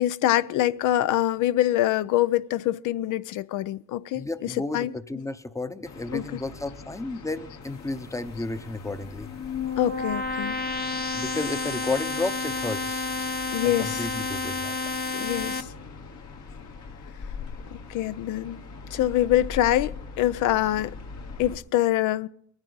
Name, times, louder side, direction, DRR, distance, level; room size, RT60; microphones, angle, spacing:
voice 1, 0.0-5.2 6.1-6.4 9.8-10.6 13.5-14.1 15.1-15.7 17.7-18.6 18.9-21.0 21.4-22.3, left 13 dB, 85° left, 0.5 m, -25 dB
voice 2, 4.1-9.3 11.2-13.1 13.6-14.8, left 2 dB, 10° left, 0.7 m, -32 dB
sound 1, 5.8-21.6, left 4 dB, 70° left, 1.7 m, -42 dB
sound 2, 9.1-15.6, left 4 dB, 35° left, 0.9 m, -30 dB
21.5 x 9.7 x 3.9 m
cardioid pair, 90°, 30 cm